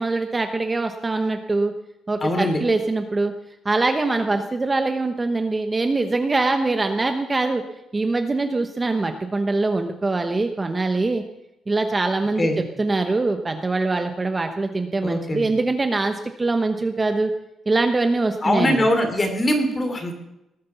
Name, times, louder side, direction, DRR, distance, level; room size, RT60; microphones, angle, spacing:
voice 1, 0.0-1.7 2.1-3.3 3.6-7.6 7.9-11.2 11.7-17.3 17.7-18.9, right 3 dB, 20° right, 6 dB, 1.0 m, -23 dB
voice 2, 2.2-2.6 12.4-12.6 15.0-15.5 18.4-20.2, left 1 dB, 25° left, 6 dB, 3.2 m, -22 dB
19.5 x 9.6 x 6.9 m, 0.89 s
cardioid pair, 135°, 0 cm